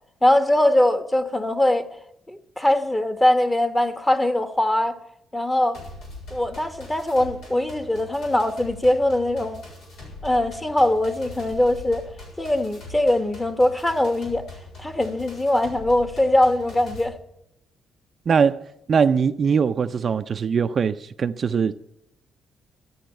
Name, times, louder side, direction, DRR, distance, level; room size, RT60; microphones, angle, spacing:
voice 1, 0.2-1.9 2.3-5.0 5.3-5.8 6.3-9.6 10.2-12.1 12.4-14.4 14.8-17.2, left 1 dB, 15° left, 1.2 m, -21 dB
sound 1, 5.7-17.0, left 2 dB, 80° left, 6.9 m, -42 dB
voice 2, 18.3-21.8, right 6 dB, 45° right, 0.5 m, -21 dB
13.5 x 8.6 x 9.0 m
cardioid pair, 90°, 0 cm